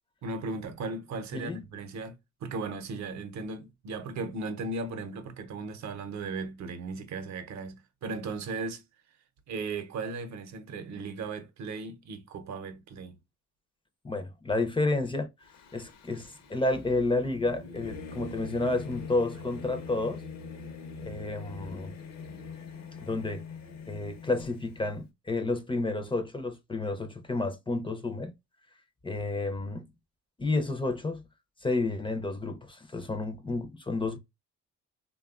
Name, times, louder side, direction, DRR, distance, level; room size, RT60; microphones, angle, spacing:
voice 1, 0.2-8.8 9.5-13.2, right 3 dB, 65° right, 0.7 m, -37 dB
voice 2, 1.3-1.6 14.0-15.3 15.7-20.2 21.0-21.9 23.0-23.4 23.9-28.3 29.0-29.9 30.4-31.2 31.6-34.2, left 2 dB, 15° left, 0.5 m, -30 dB
Singing / Musical instrument, 15.4-25.0, left 4 dB, 60° left, 0.7 m, -43 dB
3.2 x 2.2 x 2.3 m
cardioid pair, 90°, 30 cm